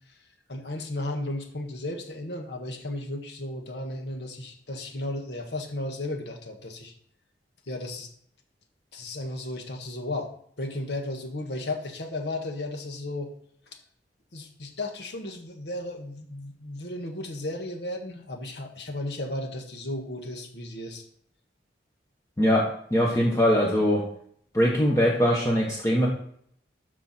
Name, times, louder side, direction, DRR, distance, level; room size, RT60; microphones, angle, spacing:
voice 1, 0.5-6.9 7.7-8.1 8.9-10.3 10.6-13.3 14.3-21.1, left 1 dB, 70° left, 4 dB, 1.6 m, -34 dB
voice 2, 22.4-24.0 24.5-26.1, equal, 15° left, -3 dB, 1.2 m, -22 dB
13.5 x 4.8 x 4.4 m, 0.66 s
head